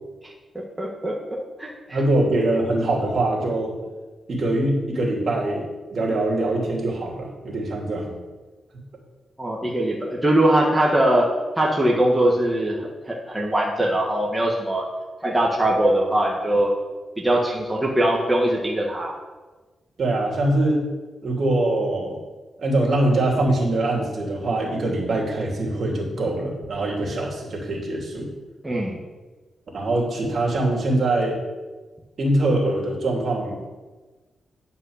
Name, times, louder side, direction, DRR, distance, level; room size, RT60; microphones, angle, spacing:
voice 1, 0.2-1.7 9.4-11.3 11.6-12.8 13.1-14.8 15.2-16.7 17.2-19.1 28.6-29.0, right 1 dB, 10° right, -3 dB, 1.5 m, -21 dB
voice 2, 1.9-3.7 4.3-8.2 20.0-20.8 21.2-22.2 22.6-28.3 29.7-31.4 32.2-33.6, right 1 dB, 55° right, -2 dB, 2.9 m, -23 dB
10.5 x 5.4 x 6.6 m, 1.3 s
cardioid pair, 100°, 0 cm